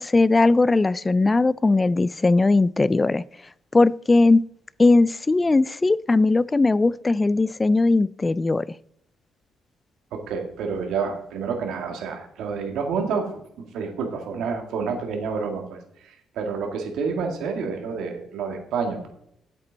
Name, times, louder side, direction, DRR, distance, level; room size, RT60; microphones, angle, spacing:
voice 1, 0.0-3.2 3.7-4.4 4.8-8.7, left 3 dB, 25° left, 21 dB, 0.3 m, -19 dB
voice 2, 10.1-13.3 13.6-19.1, right 5 dB, 80° right, 4 dB, 1.9 m, -29 dB
9.9 x 8.1 x 4.0 m, 0.73 s
cardioid pair, 90°, 0 cm